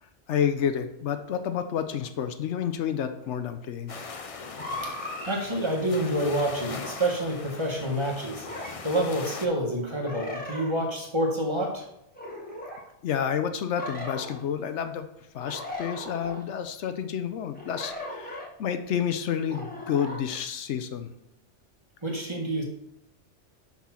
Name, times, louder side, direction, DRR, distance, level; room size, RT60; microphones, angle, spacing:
voice 1, 0.0-3.9 13.0-15.1 15.3-21.1, left 8 dB, 80° left, 9 dB, 0.9 m, -30 dB
sound 1, 3.9-9.5, left 4 dB, 40° left, 0.5 m, -40 dB
sound 2, 4.6-5.4 6.8-7.1 8.4-8.8 10.0-10.9 12.1-12.8 13.8-14.4 15.4-16.4 17.6-18.5 19.5-20.2, left 1 dB, 10° left, 1.4 m, -37 dB
voice 2, 5.2-11.9 22.0-22.6, right 1 dB, 25° right, 0 dB, 1.3 m, -28 dB
6.0 x 4.3 x 5.7 m, 0.80 s
omnidirectional pair, 1.2 m